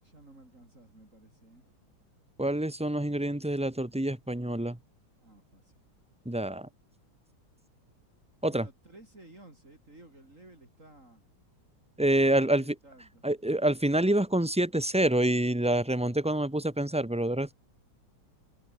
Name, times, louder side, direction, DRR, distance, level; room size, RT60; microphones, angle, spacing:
voice 1, 0.0-1.9 5.2-5.7 8.5-11.2 12.4-13.2, right 2 dB, 35° right, 5.8 m, -54 dB
voice 2, 2.4-4.8 6.2-6.7 8.4-8.7 12.0-12.7 13.2-17.5, right 1 dB, 5° right, 1.3 m, -27 dB
omnidirectional pair, 2.3 m